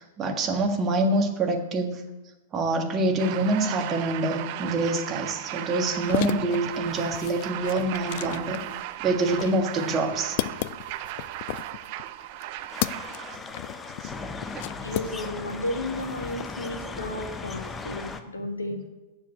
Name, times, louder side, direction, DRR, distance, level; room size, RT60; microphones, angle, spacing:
voice 1, 0.0-2.0 2.5-8.6 9.0-10.4 14.0-14.1, right 2 dB, 25° right, 3 dB, 1.5 m, -26 dB
sound 1, 3.2-13.4, right 14 dB, 45° right, 0.5 m, -36 dB
sound 2, 5.9-15.6 15.9-16.7, left 17 dB, 45° left, 0.4 m, -35 dB
sound 3, 12.7-18.2, left 3 dB, 15° left, 0.8 m, -37 dB
voice 2, 14.8-18.8, left 1 dB, 80° left, 4 dB, 1.5 m, -33 dB
7.2 x 7.2 x 8.0 m, 1.1 s
figure-of-eight pair, 100°, 0 cm